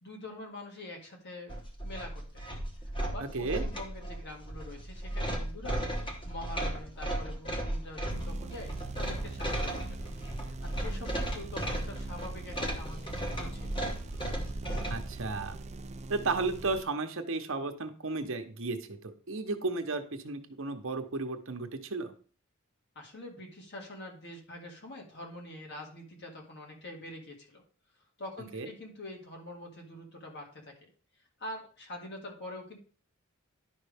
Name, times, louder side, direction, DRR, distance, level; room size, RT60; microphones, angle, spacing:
voice 1, 0.0-1.5 1.8-2.4 3.0-5.8 6.3-10.0 10.3-13.8 23.0-27.6 28.2-30.7 31.4-32.8, left 1 dB, 55° left, 1 dB, 2.0 m, -45 dB
sound 1, 1.5-15.1, right 1 dB, 25° left, 1.2 m, -35 dB
voice 2, 3.2-3.6 14.9-15.6 16.1-22.1 28.5-28.7, right 3 dB, 65° right, 6 dB, 1.0 m, -34 dB
sound 2, 8.1-16.8, right 3 dB, 35° right, 0.5 m, -43 dB
10.5 x 5.2 x 3.5 m, 0.41 s
head